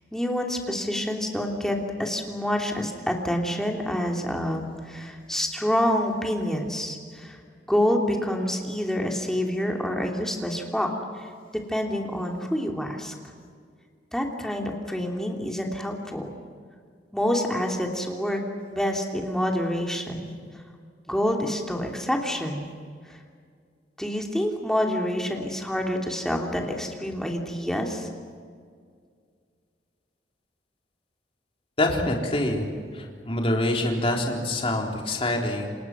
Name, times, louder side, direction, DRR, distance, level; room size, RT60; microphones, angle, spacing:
voice 1, 0.1-7.4 7.7-10.9 11.1-11.3 11.7-13.1 14.1-16.3 17.1-18.4 18.7-20.3 21.1-22.7 23.1-23.2 24.0-28.1, equal, 5° left, 1 dB, 2.9 m, -27 dB
voice 2, 31.8-35.8, left 1 dB, 30° left, 0 dB, 3.7 m, -26 dB
28.5 x 26.0 x 6.1 m, 2.1 s
head